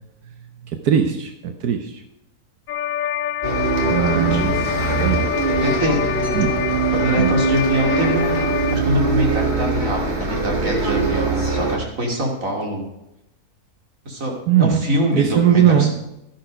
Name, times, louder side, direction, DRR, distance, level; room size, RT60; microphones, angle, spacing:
voice 1, 0.8-1.9 3.9-4.5 5.0-5.2 6.3-6.5 7.2-7.3 14.5-14.8 15.1-15.9, right 9 dB, 75° right, 6 dB, 1.4 m, -18 dB
sound 1, 2.7-8.7, left 10 dB, 70° left, 1.0 m, -26 dB
Bus, 3.4-11.8, right 4 dB, 30° right, 2.1 m, -22 dB
voice 2, 3.8-4.6 5.0-5.2 5.6-6.0 6.4-6.5 6.9-12.8 14.1-15.9, equal, 60° right, 0 dB, 2.9 m, -24 dB
12.0 x 10.5 x 5.1 m, 0.85 s
omnidirectional pair, 1.6 m